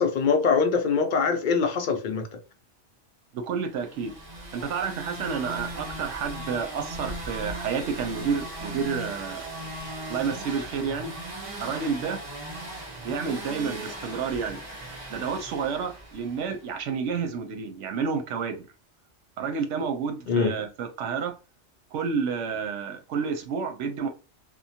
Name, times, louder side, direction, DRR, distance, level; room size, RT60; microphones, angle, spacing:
voice 1, 0.0-2.3 20.3-20.5, left 5 dB, 60° left, 0.5 m, -23 dB
voice 2, 3.3-4.1 4.5-9.5 10.1-11.1 11.6-12.2 13.0-14.6 15.1-18.6 19.4-21.3 21.9-24.1, right 6 dB, 85° right, 1.0 m, -30 dB
sound 1, 3.8-16.7, right 1 dB, 30° right, 0.8 m, -38 dB
2.9 x 2.2 x 2.7 m
omnidirectional pair, 1.2 m